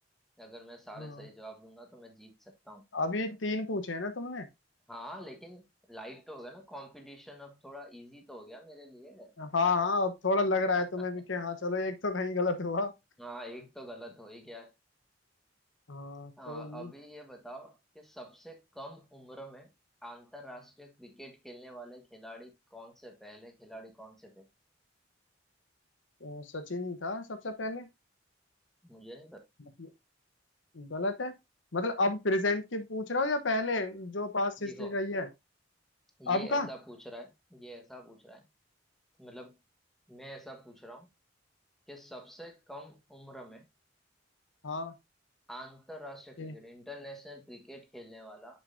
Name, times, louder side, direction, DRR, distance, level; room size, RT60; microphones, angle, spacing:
voice 1, 0.4-2.8 4.9-9.3 10.5-10.8 13.2-14.7 16.4-19.7 20.0-24.5 28.8-29.4 34.6-35.0 36.2-38.4 39.2-39.6 40.1-41.1 41.9-43.6 45.5-48.6, equal, ahead, 1.4 m, -47 dB
voice 2, 2.9-4.5 9.4-12.9 15.9-16.9 26.2-27.9 30.7-31.3 31.7-35.3 36.3-36.7 44.6-44.9 46.4-46.5, left 3 dB, 85° left, 1.0 m, -31 dB
6.8 x 6.5 x 2.6 m
head